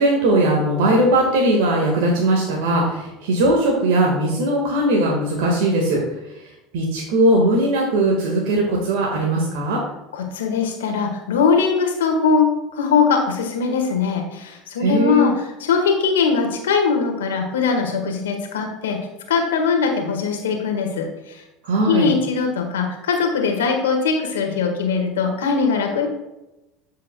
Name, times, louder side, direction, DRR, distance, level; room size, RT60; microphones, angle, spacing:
voice 1, 0.0-6.0 6.7-9.8 14.8-15.3 21.6-22.1, right 1 dB, 75° right, -1 dB, 1.6 m, -19 dB
voice 2, 10.1-19.0 19.3-21.4 21.8-26.1, left 5 dB, 90° left, 3 dB, 1.5 m, -21 dB
13.0 x 5.6 x 2.2 m, 0.97 s
hypercardioid pair, 85°, 0 cm